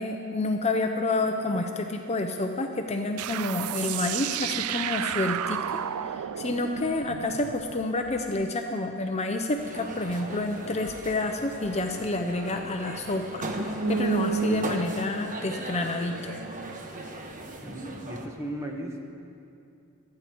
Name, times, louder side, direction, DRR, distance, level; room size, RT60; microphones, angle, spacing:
voice 1, 0.0-16.3, left 2 dB, 30° left, 4 dB, 0.7 m, -29 dB
sound 1, 3.2-8.5, right 10 dB, 85° right, 0.4 m, -32 dB
sound 2, 9.6-18.3, right 3 dB, 40° right, 1.2 m, -34 dB
voice 2, 17.6-19.0, right 1 dB, 15° right, 1 dB, 1.5 m, -36 dB
27.5 x 9.7 x 4.6 m, 2.6 s
head